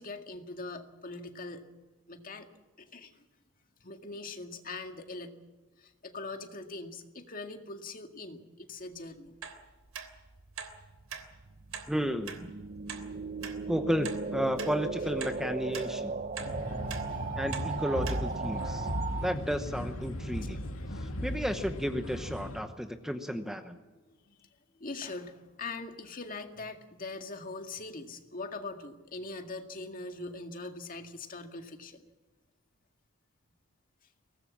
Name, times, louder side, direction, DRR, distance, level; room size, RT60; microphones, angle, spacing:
voice 1, 0.0-1.7 2.1-2.5 2.8-3.2 3.8-5.4 5.8-9.3 16.9-17.4 24.1-24.5 24.7-32.1, left 3 dB, 40° left, 5 dB, 2.0 m, -42 dB
sound 1, 9.4-9.6 9.9-10.1 10.6-10.7 11.1-11.2 11.7-11.9 12.3-12.4 12.9-13.0 13.4-13.5 14.0-14.2 14.6-14.7 15.2-15.4 15.7-15.9 16.4-16.5 16.9-17.0 17.5-17.7 18.0-18.2 18.7-18.8, right 7 dB, 75° right, 3.3 m, -41 dB
sound 2, 10.0-19.3, right 4 dB, 40° right, 0.7 m, -37 dB
voice 2, 11.9-12.5 13.7-16.1 17.4-18.9 19.2-20.6 21.0-23.8, equal, ahead, 7 dB, 1.0 m, -32 dB
sound 3, 16.4-22.6, equal, 75° left, 2.5 m, -37 dB
23.0 x 19.0 x 7.4 m, 1.2 s
head